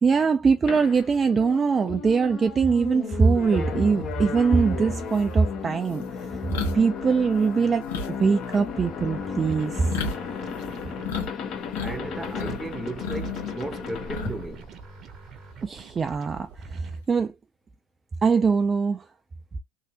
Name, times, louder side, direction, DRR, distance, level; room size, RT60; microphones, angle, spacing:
voice 1, 0.0-6.4 6.7-9.9 15.6-17.3 18.2-19.1, right 5 dB, 30° right, 0.4 m, -22 dB
sound 1, 0.7-15.2, left 6 dB, 50° left, 1.0 m, -35 dB
sound 2, 4.6-4.7 5.1-11.3 11.6-12.6 12.9-14.6 14.9-15.1 16.5-17.1, left 4 dB, 85° left, 1.1 m, -33 dB
sound 3, 9.0-11.2 12.0-17.0, right 6 dB, 45° right, 0.8 m, -45 dB
voice 2, 11.8-14.7, right 1 dB, 10° right, 0.8 m, -35 dB
3.2 x 2.7 x 2.8 m
hypercardioid pair, 80°, 0 cm